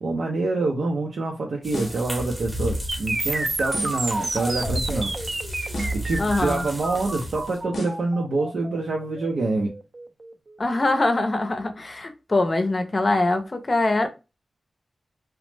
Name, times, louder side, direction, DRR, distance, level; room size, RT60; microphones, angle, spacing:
voice 1, 0.0-5.1 5.9-9.7, right 3 dB, 85° right, 0.5 m, -26 dB
sound 1, 1.6-7.6, equal, 5° right, 0.8 m, -33 dB
sound 2, 1.7-2.1 3.7-4.1 5.7-6.1 7.7-8.1, equal, 90° left, 0.7 m, -33 dB
sound 3, 2.9-10.8, right 2 dB, 35° right, 0.4 m, -30 dB
voice 2, 6.2-6.7 10.6-14.1, left 2 dB, 35° left, 0.5 m, -23 dB
3.0 x 2.0 x 3.2 m
wide cardioid pair, 125°, 0 cm